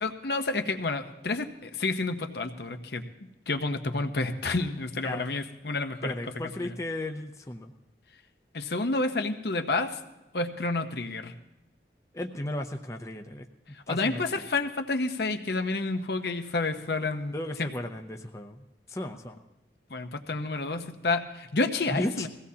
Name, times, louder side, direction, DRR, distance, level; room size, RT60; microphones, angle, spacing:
voice 1, 0.0-3.0 3.5-6.1 6.6-6.7 8.5-10.0 10.3-11.3 13.7-17.7 19.9-22.3, left 3 dB, 65° left, 7 dB, 0.9 m, -30 dB
voice 2, 6.0-7.7 12.1-13.4 13.9-14.2 17.3-18.6 18.9-19.4 21.9-22.3, left 1 dB, 15° left, 4 dB, 0.6 m, -34 dB
21.0 x 16.5 x 2.8 m, 0.97 s
head